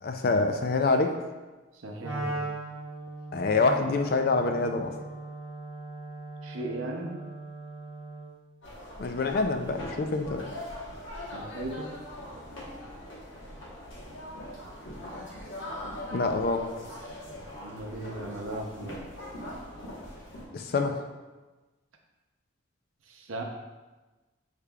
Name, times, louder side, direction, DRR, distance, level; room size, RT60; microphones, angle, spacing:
voice 1, 0.0-1.2 3.3-4.9 9.0-10.4 16.1-16.7 20.5-21.0, left 3 dB, 50° left, 6 dB, 0.4 m, -26 dB
voice 2, 1.7-2.5 6.4-7.2 11.3-11.9 17.6-19.0 23.1-23.4, right 2 dB, 85° right, 2 dB, 0.6 m, -37 dB
Wind instrument woodwind instrument, 2.0-8.4, right 2 dB, 15° right, 1.4 m, -39 dB
sound 1, 8.6-20.5, left 1 dB, 70° left, 1.1 m, -41 dB
6.6 x 3.2 x 2.3 m, 1.2 s
head